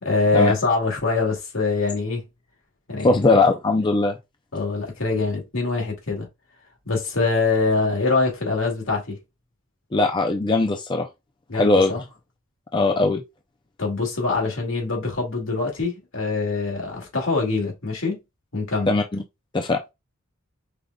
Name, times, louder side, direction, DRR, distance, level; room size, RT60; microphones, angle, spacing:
voice 1, 0.0-2.3 2.9-3.2 4.5-6.3 6.9-9.2 11.5-12.0 12.9-13.0 13.8-18.2 18.5-19.0, left 3 dB, 75° left, 2.2 m, -24 dB
voice 2, 3.0-4.2 9.9-11.1 11.5-11.9 12.7-13.2 18.9-19.0 19.5-19.8, left 3 dB, 20° left, 0.4 m, -19 dB
5.0 x 3.9 x 2.3 m
head